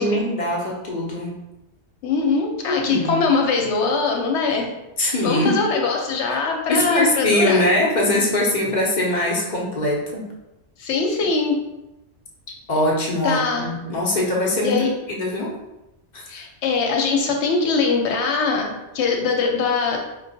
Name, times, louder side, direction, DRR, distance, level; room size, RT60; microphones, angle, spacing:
voice 1, 0.0-1.4 2.7-3.2 5.0-5.6 6.2-6.4 6.7-10.2 12.7-15.5 16.1-16.2, left 1 dB, 45° left, -3 dB, 0.7 m, -22 dB
voice 2, 2.0-4.7 5.0-7.6 10.8-11.6 13.2-13.7 14.6-14.9 16.3-20.0, left 4 dB, 80° left, 2 dB, 0.9 m, -22 dB
4.5 x 2.1 x 2.6 m, 0.95 s
omnidirectional pair, 1.2 m